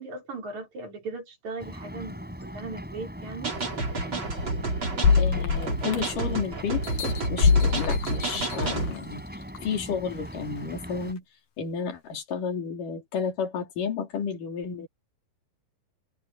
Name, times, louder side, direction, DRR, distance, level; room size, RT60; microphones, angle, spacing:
voice 1, 0.0-3.6, right 3 dB, 55° right, 6.3 m, -38 dB
Ocean, 1.6-11.1, equal, ahead, 6.6 m, -40 dB
sound 1, 3.4-8.9, right 3 dB, 35° right, 5.4 m, -30 dB
sound 2, 5.0-6.3 6.8-9.0 9.6-9.7, left 6 dB, 85° left, 3.7 m, -24 dB
voice 2, 5.2-9.2 9.6-11.2 11.6-14.9, left 6 dB, 70° left, 5.0 m, -32 dB
omnidirectional pair, 3.9 m